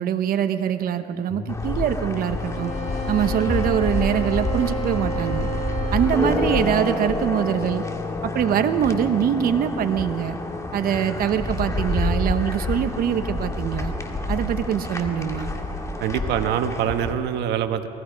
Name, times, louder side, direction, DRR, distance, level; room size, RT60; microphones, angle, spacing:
voice 1, 0.0-2.7 3.1-5.5 5.9-7.8 8.2-10.4 10.7-13.9 14.3-15.5, right 9 dB, 60° right, 8 dB, 1.0 m, -23 dB
sound 1, 1.2-13.1, left 5 dB, 45° left, 4.2 m, -37 dB
sound 2, 1.5-17.1, left 2 dB, 20° left, 2.1 m, -28 dB
sound 3, 2.4-7.2, right 3 dB, 65° left, 5.5 m, -32 dB
voice 2, 16.0-17.9, right 9 dB, 80° right, 8 dB, 1.3 m, -24 dB
29.0 x 18.5 x 5.2 m, 2.7 s
cardioid pair, 110°, 17 cm